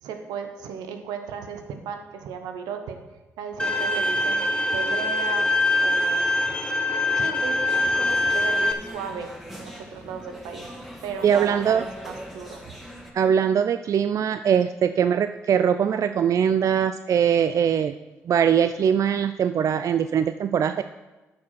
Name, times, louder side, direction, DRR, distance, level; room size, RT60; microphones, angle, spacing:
voice 1, 0.0-3.0 3.4-4.4 4.7-5.5 5.8-6.5 6.9-10.7 11.0-12.8, right 6 dB, 85° right, 6 dB, 0.9 m, -36 dB
Bowed string instrument, 3.6-8.7, left 2 dB, 15° left, 1.1 m, -23 dB
sound 1, 7.7-13.1, equal, 5° right, 1.9 m, -42 dB
voice 2, 11.2-11.8 13.1-17.9 18.3-20.8, right 8 dB, 55° right, 10 dB, 0.3 m, -21 dB
9.2 x 5.3 x 5.8 m, 1.1 s
supercardioid pair, 50°, 7 cm